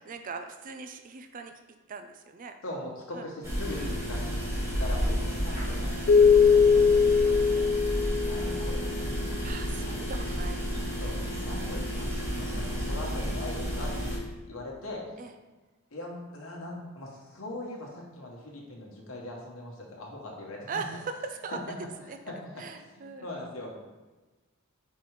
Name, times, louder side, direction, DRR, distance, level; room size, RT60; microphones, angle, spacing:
voice 1, 0.0-1.5 1.9-2.6 3.1-3.3 3.7-4.1 7.5-7.8 9.4-11.0 15.2-15.3 20.7-21.6 22.1-22.2 22.6-23.3, right 4 dB, 40° right, 7 dB, 0.3 m, -40 dB
voice 2, 2.6-4.4 4.8-7.3 8.2-9.3 11.0-14.2 14.5-15.0 15.9-20.8 22.2-23.8, left 1 dB, 70° left, -2 dB, 1.2 m, -41 dB
sound 1, 3.4-14.2, equal, 10° right, 1.1 m, -31 dB
Keyboard (musical), 6.1-9.0, left 6 dB, 50° left, 0.3 m, -21 dB
4.7 x 4.2 x 4.8 m, 1.2 s
head